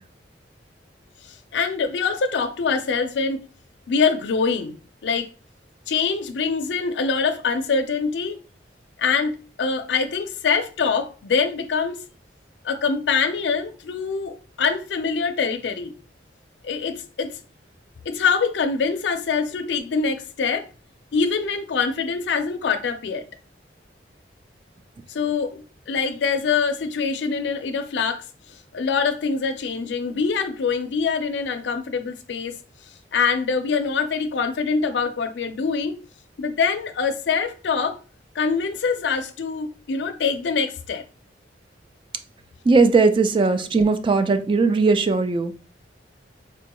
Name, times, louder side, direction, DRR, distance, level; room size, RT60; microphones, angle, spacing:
voice 1, 1.2-3.4 3.9-5.3 5.9-8.4 9.0-12.0 12.6-15.9 16.6-17.4 18.1-20.7 21.1-23.2 25.1-32.6 33.1-36.0 36.4-38.0 38.3-41.0, left 5 dB, 70° left, 0.4 m, -24 dB
voice 2, 42.6-45.5, right 4 dB, 30° right, 0.3 m, -18 dB
4.1 x 2.3 x 2.9 m
head